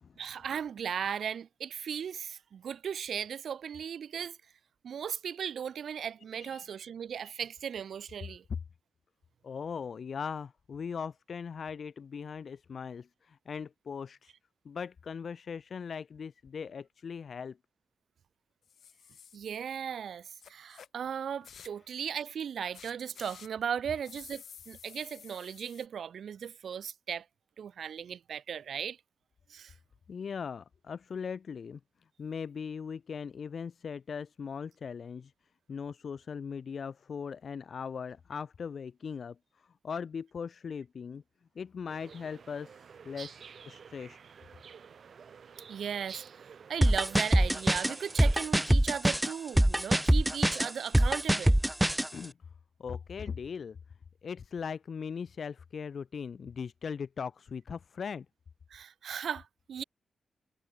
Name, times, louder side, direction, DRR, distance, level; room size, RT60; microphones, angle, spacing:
voice 1, 0.2-4.4 4.8-8.4 19.3-27.3 27.6-29.0 29.5-29.7 45.7-46.2 46.5-51.6 58.7-59.8, right 8 dB, 75° right, 1.9 m, -37 dB
voice 2, 9.4-14.3 14.6-17.6 30.1-31.8 32.2-35.3 35.7-41.2 41.6-44.2 52.1-52.3 52.8-53.8 54.2-58.3, left 6 dB, 50° left, 0.7 m, -39 dB
sound 1, 18.6-19.4 20.4-20.9 21.4-21.8 22.7-23.5 24.0-25.9, left 8 dB, 80° left, 5.4 m, -52 dB
sound 2, 41.9-48.5, right 6 dB, 55° right, 1.2 m, -51 dB
sound 3, 46.8-52.1, right 1 dB, 5° right, 0.4 m, -24 dB
wide cardioid pair, 160°, 0 cm